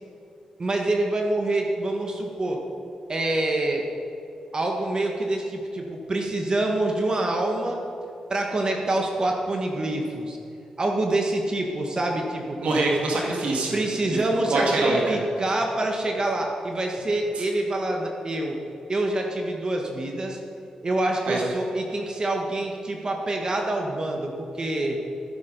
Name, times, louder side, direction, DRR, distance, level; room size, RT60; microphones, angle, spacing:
voice 1, 0.6-2.6 3.1-3.9 4.5-7.8 8.3-10.4 10.8-12.6 13.7-18.6 18.9-20.4 20.8-25.0, right 2 dB, 40° right, 2 dB, 1.5 m, -26 dB
voice 2, 12.6-13.8 14.3-15.0 17.4-17.5 21.3-21.4, right 2 dB, 80° right, -2 dB, 2.0 m, -24 dB
14.5 x 8.9 x 5.4 m, 2.6 s
cardioid pair, 75°, 2 cm